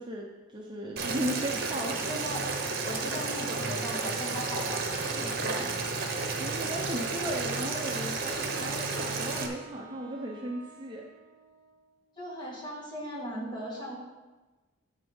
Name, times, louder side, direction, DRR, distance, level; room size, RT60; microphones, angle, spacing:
voice 1, 0.0-1.9 5.5-5.7 6.4-11.0, right 1 dB, 20° right, -1 dB, 0.8 m, -36 dB
Boiling, 1.0-9.5, right 3 dB, 50° right, 1.0 m, -32 dB
voice 2, 1.9-2.4 2.8-5.8 12.2-14.0, equal, 20° left, -4 dB, 2.0 m, -38 dB
Wind instrument woodwind instrument, 7.4-12.1, right 4 dB, 70° right, 0.7 m, -52 dB
10.5 x 3.7 x 7.1 m, 1.2 s
head